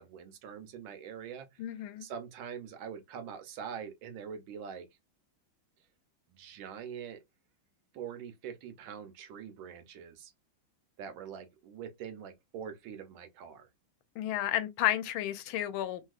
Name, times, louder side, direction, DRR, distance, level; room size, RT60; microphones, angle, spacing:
voice 1, 0.0-4.9 6.3-7.2 7.9-10.3 11.0-13.7, right 7 dB, 75° right, 1.4 m, -44 dB
voice 2, 1.6-2.1 14.2-16.0, left 12 dB, 80° left, 1.4 m, -32 dB
3.4 x 2.7 x 2.3 m
omnidirectional pair, 2.3 m